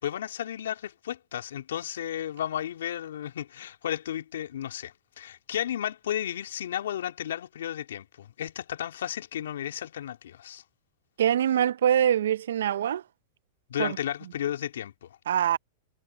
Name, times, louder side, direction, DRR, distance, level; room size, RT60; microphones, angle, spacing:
voice 1, 0.0-10.6 13.7-15.1, left 10 dB, 75° left, 2.9 m, -33 dB
voice 2, 11.2-13.0 13.8-14.0 15.3-15.6, right 10 dB, 75° right, 0.6 m, -24 dB
hypercardioid pair, 115°, 0 cm